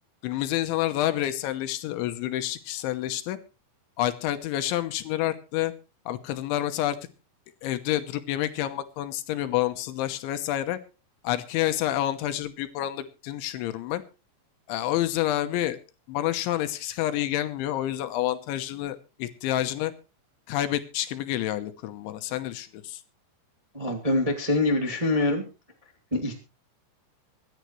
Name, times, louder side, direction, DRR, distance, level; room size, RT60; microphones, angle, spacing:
voice 1, 0.2-3.4 4.0-5.7 6.1-7.0 7.6-10.8 11.2-14.0 14.7-15.8 16.1-19.9 20.5-23.0, left 13 dB, 80° left, 10 dB, 3.3 m, -28 dB
voice 2, 23.7-25.4 26.1-26.4, left 2 dB, 15° right, 0 dB, 1.4 m, -24 dB
25.0 x 10.5 x 3.2 m, 0.32 s
omnidirectional pair, 5.5 m